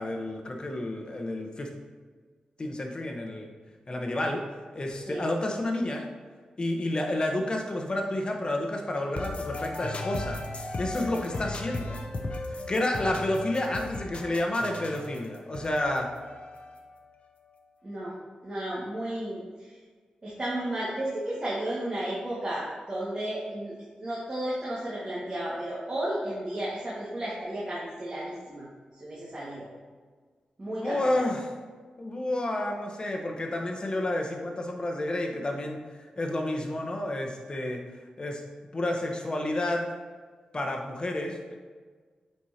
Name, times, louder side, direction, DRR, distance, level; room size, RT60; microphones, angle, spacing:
voice 1, 0.0-1.7 2.6-3.5 3.9-4.4 4.7-6.1 6.6-12.0 12.5-16.1 30.7-31.5 32.0-35.8 36.2-37.8 38.2-38.4 38.7-39.9 40.5-41.6, left 1 dB, 35° left, 1 dB, 1.0 m, -30 dB
sound 1, 9.1-17.0, left 2 dB, 50° left, 0.7 m, -37 dB
voice 2, 17.8-18.1 18.4-19.7 20.2-23.7 24.0-28.7 29.0-29.7 30.6-31.3, right 1 dB, 35° right, -8 dB, 1.8 m, -33 dB
8.1 x 4.5 x 2.9 m, 1.5 s
cardioid pair, 65°, 3 cm